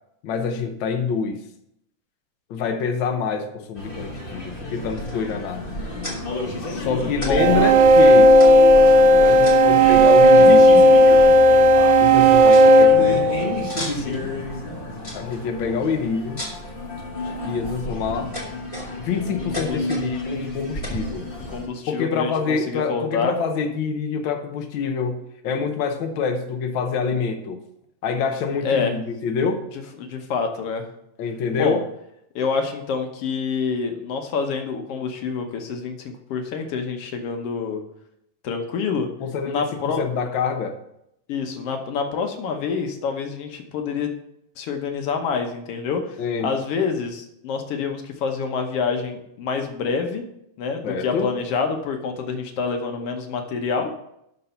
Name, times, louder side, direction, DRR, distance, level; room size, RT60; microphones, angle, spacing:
voice 1, 0.2-1.4 2.5-5.6 6.8-8.3 9.2-10.9 12.0-13.3 15.1-16.4 17.4-18.3 19.0-21.3 21.9-27.6 28.0-29.6 31.2-31.8 39.2-40.8 46.2-46.5 50.8-51.4, left 5 dB, 90° left, 5 dB, 1.0 m, -26 dB
sound 1, 3.7-21.7, left 1 dB, 30° left, 0.9 m, -31 dB
sound 2, 5.0-5.4 6.0-6.2 7.2-7.3 7.6-7.7 8.4-8.8 9.4-9.8 10.8-10.9 11.2-11.6 11.9-12.0 12.5-12.7 13.7-14.2 15.0-15.4 16.4-16.7 17.4-17.7 18.3-19.1 19.5-20.1 20.8-21.0, left 1 dB, 15° left, 1.8 m, -34 dB
voice 2, 6.6-7.6 13.9-14.3 19.5-19.9 21.5-23.4 28.6-29.0 30.0-30.9 31.6-31.8 32.4-37.8 38.4-39.1 39.5-40.0 41.3-44.1 44.6-46.2 46.4-50.2 50.6-53.9, left 5 dB, 65° left, 5 dB, 1.7 m, -27 dB
sound 3, 7.4-13.9, equal, 90° right, 2.1 m, -13 dB
12.0 x 4.1 x 5.6 m, 0.80 s
omnidirectional pair, 3.4 m